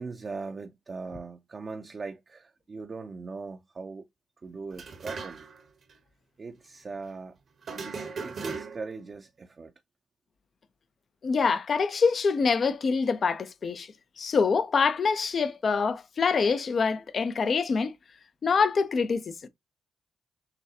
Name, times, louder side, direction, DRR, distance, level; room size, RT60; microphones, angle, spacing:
voice 1, 0.0-4.1 4.4-5.5 6.4-7.4 7.7-9.7, right 4 dB, 45° right, 0.6 m, -40 dB
sound 1, 4.7-5.6 5.9-6.0 7.6-9.0, right 5 dB, 60° right, 1.1 m, -38 dB
voice 2, 11.2-13.9 14.2-17.9 18.4-19.5, left 5 dB, 55° left, 0.6 m, -25 dB
6.6 x 2.3 x 2.8 m
supercardioid pair, 55°, 0 cm